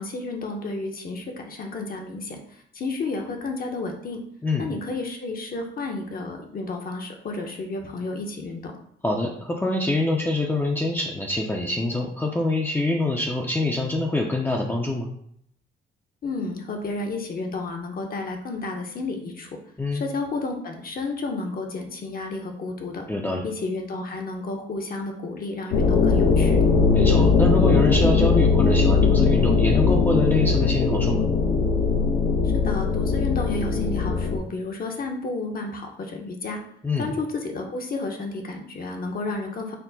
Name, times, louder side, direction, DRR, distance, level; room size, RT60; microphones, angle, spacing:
voice 1, 0.0-2.4 2.7-4.2 4.6-8.7 16.2-19.5 19.9-23.1 23.4-26.6 32.5-36.6 37.0-39.8, left 3 dB, 50° left, 2 dB, 0.8 m, -31 dB
voice 2, 9.0-15.1 19.8-20.0 23.1-23.4 26.9-31.3 36.8-37.1, left 2 dB, 10° left, 0 dB, 0.5 m, -25 dB
sound 1, 25.7-34.4, left 4 dB, 85° left, 0.6 m, -20 dB
4.3 x 2.1 x 4.0 m, 0.69 s
cardioid pair, 90°, 20 cm